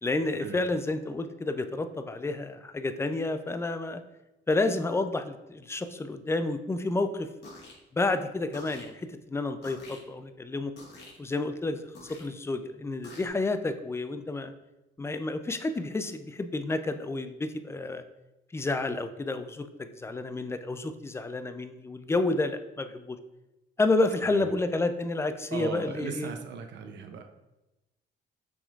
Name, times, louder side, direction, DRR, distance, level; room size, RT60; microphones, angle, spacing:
voice 1, 0.0-4.0 4.5-7.3 7.9-10.7 11.2-14.5 15.0-18.0 18.5-23.2 23.8-26.3, left 2 dB, 15° left, 9 dB, 0.3 m, -30 dB
sound 1, 7.4-7.7 8.5-8.9 9.6-10.0 10.8-11.2 11.9-12.3 13.0-13.3, left 2 dB, 60° left, 1.4 m, -46 dB
voice 2, 25.5-27.2, right 6 dB, 65° right, 5 dB, 0.6 m, -37 dB
5.9 x 3.6 x 2.4 m, 0.98 s
cardioid pair, 90°, 20 cm